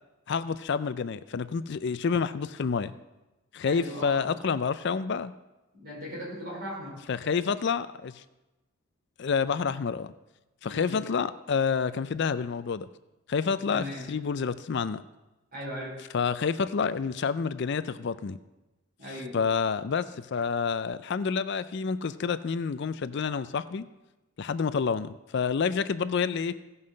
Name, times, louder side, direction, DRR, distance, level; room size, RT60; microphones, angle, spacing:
voice 1, 0.3-2.9 3.5-5.3 7.1-8.2 9.2-10.1 10.6-12.9 13.3-15.0 16.1-18.4 19.3-23.9 24.4-26.5, left 5 dB, 50° left, 14 dB, 0.4 m, -28 dB
voice 2, 3.6-4.3 5.7-7.0 10.6-11.0 13.7-14.1 15.5-16.0 19.0-19.4, equal, 40° right, -4 dB, 4.7 m, -38 dB
16.0 x 5.6 x 6.4 m, 1.0 s
head